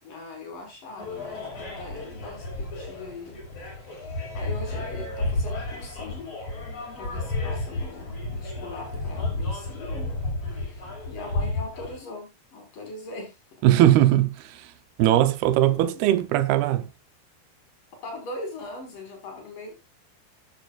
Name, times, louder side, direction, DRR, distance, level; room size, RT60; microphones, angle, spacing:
voice 1, 0.0-3.4 3.9-6.3 6.9-10.2 10.5-13.7 15.7-16.0 18.0-19.7, left 2 dB, 55° left, 6.4 m, -41 dB
sound 1, 1.0-12.0, left 2 dB, 40° left, 5.8 m, -32 dB
voice 2, 13.6-14.7 15.0-16.9, right 13 dB, 80° right, 2.8 m, -20 dB
14.0 x 10.5 x 2.5 m
omnidirectional pair, 4.5 m